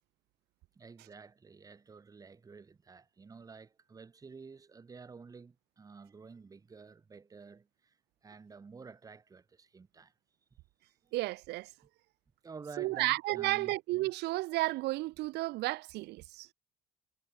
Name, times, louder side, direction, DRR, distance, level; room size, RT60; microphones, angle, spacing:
voice 1, 0.8-8.0 8.2-10.1 12.4-13.8, right 5 dB, 20° right, 0.8 m, -51 dB
voice 2, 11.1-11.7 12.8-16.5, right 19 dB, 80° right, 0.5 m, -32 dB
cardioid pair, 110°, 17 cm